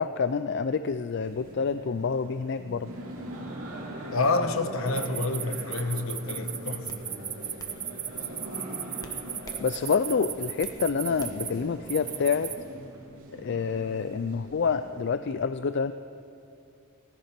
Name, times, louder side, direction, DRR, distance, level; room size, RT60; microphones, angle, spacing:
voice 1, 0.0-2.9 9.6-12.5 13.4-15.9, left 5 dB, 55° left, 0.4 m, -27 dB
sound 1, 1.2-15.1, right 1 dB, 80° right, 2.9 m, -42 dB
voice 2, 4.1-6.9, left 3 dB, 70° left, 1.1 m, -28 dB
sound 2, 4.9-11.5 11.9-12.6, right 8 dB, 20° right, 0.7 m, -35 dB
sound 3, 6.1-6.3 6.9-7.1 7.6-7.8 9.0-9.6 10.0-10.8 11.2-11.5, left 2 dB, 15° left, 1.0 m, -48 dB
16.5 x 14.5 x 5.9 m
head